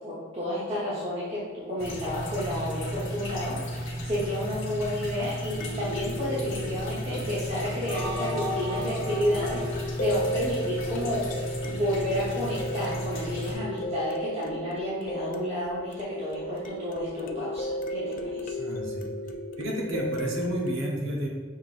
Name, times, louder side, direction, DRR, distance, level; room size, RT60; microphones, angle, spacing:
voice 1, 0.0-11.2 11.6-18.5, equal, 30° right, -10 dB, 1.0 m, -31 dB
sound 1, 0.9-1.0 5.6-20.7, left 1 dB, 45° left, 0.3 m, -35 dB
sound 2, 1.8-13.5, equal, 75° left, 1.2 m, -34 dB
sound 3, 7.9-11.0, equal, 10° left, 0.6 m, -37 dB
voice 2, 18.6-19.0 19.6-21.3, equal, 85° right, -2 dB, 1.1 m, -31 dB
5.8 x 3.6 x 2.5 m, 1.5 s
head